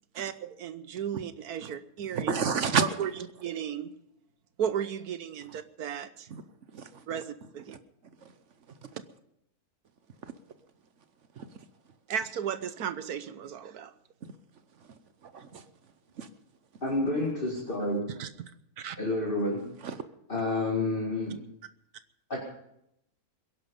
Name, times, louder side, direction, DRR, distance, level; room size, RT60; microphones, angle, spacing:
voice 1, 0.2-2.3 2.8-3.1 3.4-3.9 4.6-6.3 7.1-7.8 12.1-13.9 18.2-18.3 18.8-19.0, right 9 dB, 85° right, 13 dB, 1.4 m, -34 dB
voice 2, 2.1-3.1 6.3-6.4 6.7-7.2 7.7-7.8 8.2-8.3 10.2-10.3 11.4-11.5 14.2-14.3 15.2-15.7 16.2-16.3 19.8-20.0, right 6 dB, 55° right, 11 dB, 1.1 m, -31 dB
voice 3, 16.8-18.1 19.0-19.7 20.3-21.4 22.3-22.4, left 2 dB, 35° left, -2 dB, 2.3 m, -29 dB
21.5 x 11.0 x 5.3 m, 0.78 s
omnidirectional pair, 1.6 m